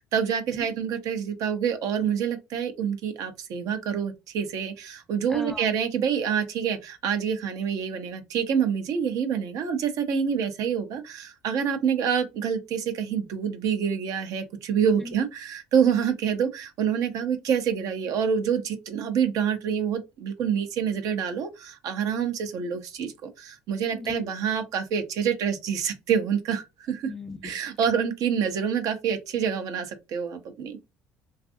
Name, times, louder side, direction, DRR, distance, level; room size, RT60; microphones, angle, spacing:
voice 1, 0.1-27.1 27.4-30.8, right 7 dB, 65° right, 0.6 m, -27 dB
voice 2, 5.3-5.7 15.0-15.2 23.9-24.2 27.0-27.5, left 2 dB, 5° left, 0.6 m, -37 dB
2.5 x 2.4 x 2.5 m
supercardioid pair, 80°, 6 cm